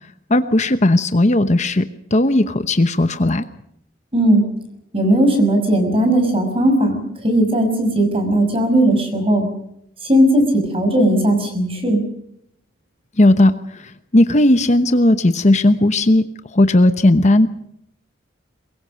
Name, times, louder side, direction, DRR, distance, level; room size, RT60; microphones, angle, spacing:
voice 1, 0.3-1.8 2.1-3.4 13.2-16.2 16.5-17.5, left 1 dB, 35° left, 10 dB, 1.0 m, -15 dB
voice 2, 4.1-4.4 4.9-9.5 10.0-12.0, right 1 dB, 30° right, 6 dB, 5.8 m, -17 dB
23.5 x 21.5 x 6.4 m, 0.73 s
head